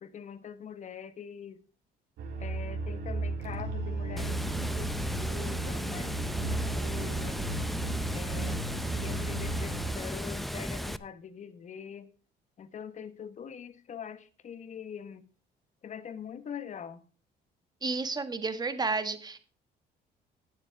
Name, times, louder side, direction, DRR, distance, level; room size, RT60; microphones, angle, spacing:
voice 1, 0.0-1.6 2.4-4.4 4.7-7.4 8.1-8.6 9.0-12.1 12.6-15.2 15.8-17.0, left 7 dB, 45° left, 1.3 m, -43 dB
sound 1, 2.2-9.9, right 2 dB, 75° right, 3.6 m, -34 dB
Water, 4.2-11.0, equal, ahead, 0.6 m, -35 dB
voice 2, 17.8-19.4, right 4 dB, 25° right, 1.6 m, -31 dB
19.0 x 7.4 x 3.5 m
cardioid pair, 110°, 17 cm